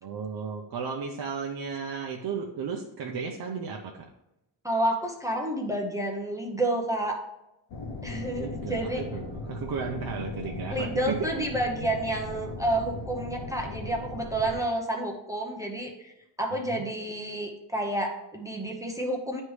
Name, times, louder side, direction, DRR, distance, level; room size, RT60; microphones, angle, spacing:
voice 1, 0.0-4.1 8.3-11.3 16.6-16.8, right 5 dB, 55° right, 1 dB, 0.6 m, -34 dB
voice 2, 4.6-7.2 8.0-9.0 10.7-16.1 16.4-19.4, right 1 dB, 5° right, 0 dB, 0.7 m, -30 dB
sound 1, 7.7-14.6, left 2 dB, 80° left, 0.9 m, -38 dB
9.4 x 3.2 x 3.2 m, 0.89 s
wide cardioid pair, 120°, 44 cm